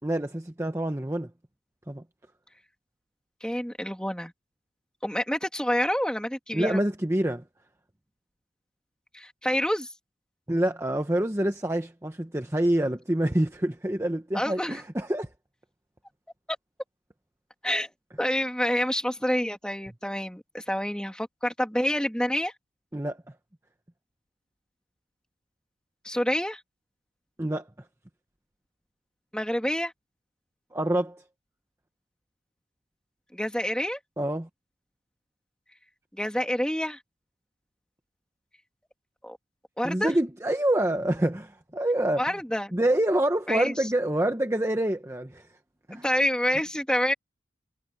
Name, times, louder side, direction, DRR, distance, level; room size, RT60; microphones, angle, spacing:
voice 1, 0.0-1.3 1.9-2.0 6.5-7.4 10.5-15.3 22.9-23.2 27.4-27.6 30.7-31.2 34.2-34.5 39.8-42.2 42.7-45.5 45.9-46.0, right 1 dB, 15° right, 0.9 m, -26 dB
voice 2, 3.4-4.3 5.0-6.8 9.1-9.9 14.3-14.8 17.6-17.9 18.2-22.5 26.0-26.6 29.3-29.9 33.3-34.0 36.1-37.0 39.2-39.4 39.8-40.1 42.2-42.7 43.5-43.9 45.9-47.1, equal, 5° left, 2.7 m, -27 dB
head